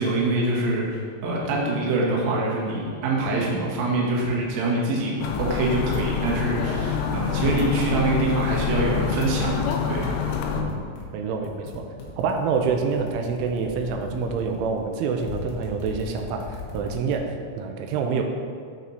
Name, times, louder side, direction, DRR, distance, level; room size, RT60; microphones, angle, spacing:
voice 1, 0.0-10.1, right 2 dB, 65° right, -4 dB, 1.7 m, -25 dB
sound 1, 5.2-10.6, left 7 dB, 85° left, 3.1 m, -26 dB
sound 2, 9.5-11.0 11.4-17.2, left 4 dB, 65° left, 2.7 m, -40 dB
voice 2, 11.1-11.9 12.2-17.3 17.6-18.2, right 5 dB, 90° right, 3 dB, 3.1 m, -27 dB
12.5 x 4.4 x 4.1 m, 2.2 s
omnidirectional pair, 5.5 m